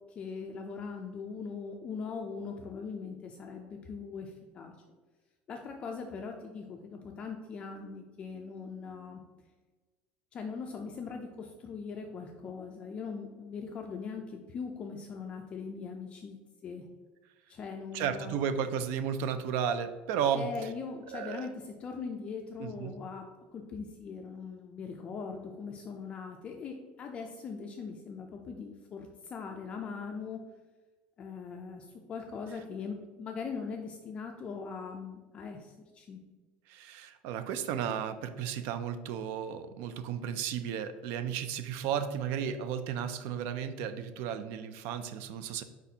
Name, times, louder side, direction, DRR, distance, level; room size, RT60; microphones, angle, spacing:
voice 1, 0.1-4.7 5.5-9.2 10.3-16.8 17.5-18.4 20.3-23.3 23.5-30.4 31.2-36.2, left 5 dB, 25° left, 2 dB, 0.3 m, -41 dB
voice 2, 17.9-20.5 21.1-21.5 22.6-22.9 36.7-45.6, right 8 dB, 60° right, 11 dB, 0.4 m, -34 dB
4.6 x 4.1 x 2.7 m, 1.3 s
cardioid pair, 160°, 4 cm